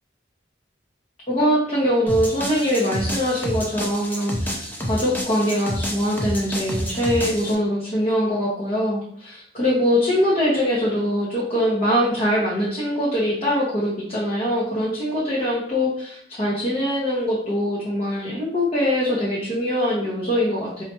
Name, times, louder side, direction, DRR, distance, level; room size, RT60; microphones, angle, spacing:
voice 1, 1.3-20.8, equal, 35° left, -6 dB, 0.8 m, -23 dB
sound 1, 2.1-7.5, equal, 10° left, 0.5 m, -29 dB
4.3 x 2.4 x 2.8 m, 0.70 s
head